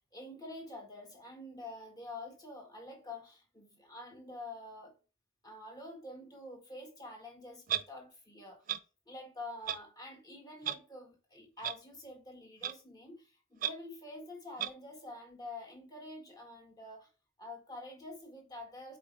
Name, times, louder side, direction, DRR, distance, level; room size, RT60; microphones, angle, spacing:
voice 1, 0.1-4.9 5.4-8.6 9.1-13.2 13.5-17.1 17.4-19.0, left 2 dB, 20° left, 1.7 m, -47 dB
Clock, 7.7-7.8 8.7-8.8 9.7-9.8 10.6-10.8 11.6-11.7 12.6-12.7 13.6-13.7 14.6-14.7, right 10 dB, 40° right, 0.4 m, -33 dB
8.3 x 4.2 x 3.4 m
head